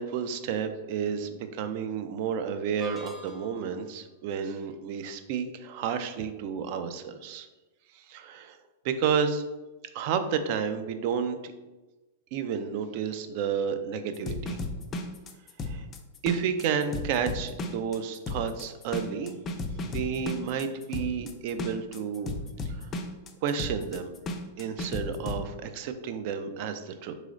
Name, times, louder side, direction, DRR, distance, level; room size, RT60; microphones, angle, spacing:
voice 1, 0.0-7.5 7.9-8.6 8.8-9.4 9.9-11.5 12.3-14.6 15.6-15.8 16.2-19.4 19.9-22.3 22.7-22.9 23.4-24.1 24.6-27.1, right 7 dB, 50° right, 9 dB, 0.3 m, -31 dB
sound 1, 2.8-3.8, right 1 dB, 5° right, 0.7 m, -44 dB
sound 2, 14.1-25.4, left 2 dB, 25° left, 0.3 m, -35 dB
3.7 x 3.1 x 2.5 m, 1.1 s
hypercardioid pair, 135°, 0 cm